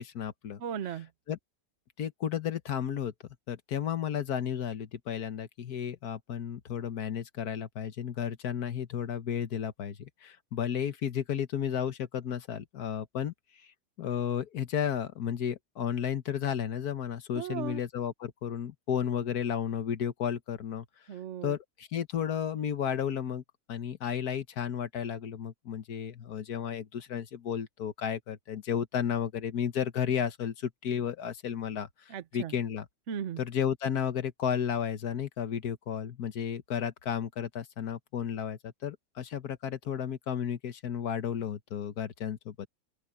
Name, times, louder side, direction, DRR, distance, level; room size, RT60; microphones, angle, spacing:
voice 1, 0.0-0.6 1.3-1.4 2.0-3.1 3.5-13.3 13.6-13.7 14.0-20.8 21.4-23.4 23.7-32.9 33.4-42.7, left 8 dB, 75° left, 1.6 m, -33 dB
voice 2, 0.6-1.1 17.3-17.8 21.1-21.6 32.1-32.5 33.1-33.4, right 9 dB, 55° right, 1.1 m, -36 dB
open air
omnidirectional pair, 1.7 m